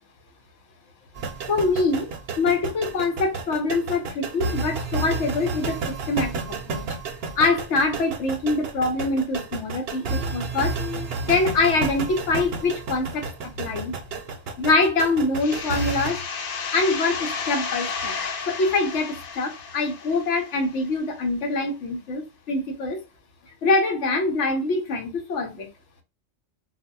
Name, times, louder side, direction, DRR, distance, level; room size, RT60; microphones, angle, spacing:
sound 1, 1.2-16.1, right 4 dB, 65° right, 0.8 m, -31 dB
voice 1, 1.5-2.1 2.4-5.8 6.1-6.3 6.6-6.8 7.4-13.3 13.6-13.9 14.6-16.2 16.7-18.2 18.5-23.0 23.6-25.7, left 3 dB, 80° left, 1.1 m, -24 dB
sound 2, 15.4-20.9, left 5 dB, 60° left, 0.7 m, -32 dB
4.0 x 2.1 x 2.3 m
omnidirectional pair, 1.2 m